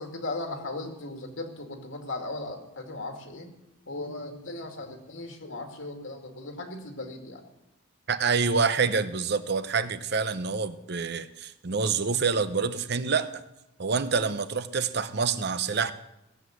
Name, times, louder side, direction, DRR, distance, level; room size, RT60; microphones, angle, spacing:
voice 1, 0.0-3.5 3.9-7.4, left 2 dB, 70° left, 4 dB, 2.3 m, -37 dB
voice 2, 8.1-13.4 13.8-15.9, right 5 dB, 55° right, 12 dB, 0.8 m, -27 dB
17.0 x 8.0 x 7.7 m, 0.88 s
head